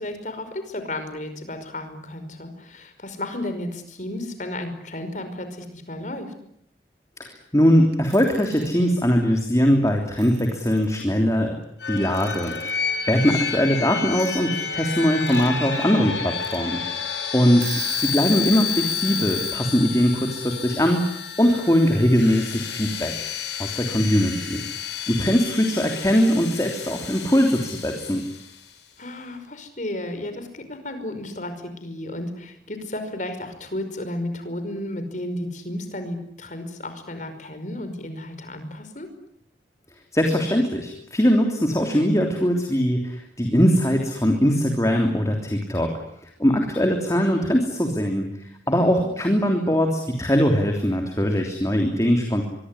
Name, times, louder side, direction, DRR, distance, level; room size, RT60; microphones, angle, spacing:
voice 1, 0.0-6.3 17.4-17.6 29.0-39.1 48.9-49.0, left 1 dB, 45° left, 9 dB, 5.4 m, -33 dB
voice 2, 7.2-11.5 11.9-12.8 13.1-16.8 17.3-23.1 23.6-24.6 25.1-28.2 40.1-52.4, equal, 20° left, 3 dB, 3.2 m, -21 dB
Alarm / Clock, 7.9-8.7 9.9-10.0 10.2-11.0 12.1-12.8 14.2-14.3 15.0-15.5 15.9-16.0 16.4-16.6 17.1-17.2 17.5-19.6, right 12 dB, 75° right, 4.7 m, -35 dB
sound 1, 11.8-28.5, left 7 dB, 80° left, 6.8 m, -30 dB
24.5 x 24.5 x 9.9 m, 0.72 s
head